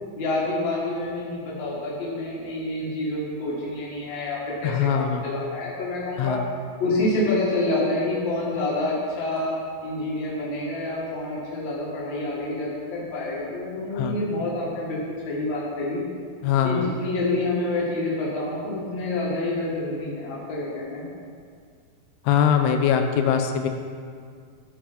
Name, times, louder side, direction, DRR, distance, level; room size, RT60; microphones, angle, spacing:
voice 1, 0.2-6.4 6.8-9.5 9.8-16.0 16.6-21.1, left 2 dB, 45° left, -6 dB, 2.7 m, -27 dB
voice 2, 4.6-5.2 6.2-6.5 13.9-14.2 16.4-17.0 22.2-23.7, left 8 dB, 85° left, 6 dB, 2.7 m, -22 dB
14.0 x 4.9 x 5.1 m, 2.1 s
omnidirectional pair, 4.5 m